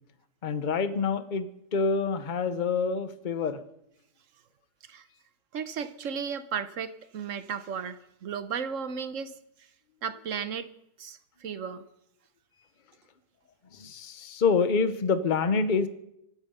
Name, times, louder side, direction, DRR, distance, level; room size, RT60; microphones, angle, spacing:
voice 1, 0.4-3.6 13.7-15.9, left 5 dB, 35° left, 12 dB, 0.9 m, -27 dB
voice 2, 5.5-9.4 10.0-10.7 11.0-11.8, right 7 dB, 60° right, 12 dB, 1.1 m, -34 dB
24.0 x 8.9 x 5.5 m, 0.79 s
omnidirectional pair, 1.7 m